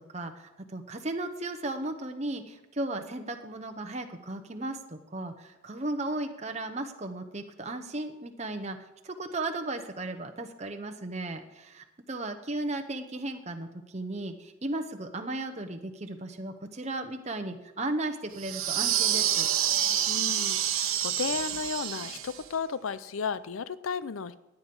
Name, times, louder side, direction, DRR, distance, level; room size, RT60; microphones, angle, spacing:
voice 1, 0.0-19.5, right 2 dB, 30° right, 6 dB, 0.9 m, -35 dB
sound 1, 18.4-22.4, right 10 dB, 90° right, 1.2 m, -28 dB
voice 2, 20.1-24.3, left 5 dB, 80° left, 16 dB, 0.5 m, -34 dB
16.5 x 9.3 x 5.4 m, 1.0 s
head